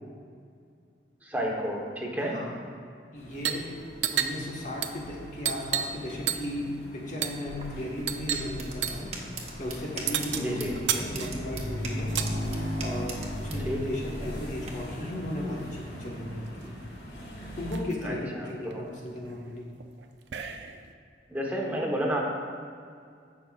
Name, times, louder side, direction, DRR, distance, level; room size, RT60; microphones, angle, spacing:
voice 1, 1.2-2.4 10.3-10.7 13.6-13.8 18.0-18.9 21.3-22.2, equal, 10° right, -2 dB, 1.1 m, -31 dB
voice 2, 2.2-2.6 3.1-3.8 4.1-9.2 9.6-12.2 12.8-16.8 17.6-19.7, left 1 dB, 45° left, -2 dB, 1.5 m, -35 dB
sound 1, 3.2-17.8, equal, 65° left, 1.9 m, -39 dB
sound 2, 3.3-3.7 3.9-6.0 6.3-6.6 7.2-7.4 8.1-8.5 8.8-9.1 10.1-12.3 13.4-14.5 15.7-15.8 16.0-16.6 17.1-17.2 17.4-17.9 18.5-20.9, right 9 dB, 80° right, 0.5 m, -33 dB
sound 3, 7.5-14.7, right 2 dB, 35° right, 1.1 m, -41 dB
16.5 x 5.9 x 2.5 m, 2.3 s
head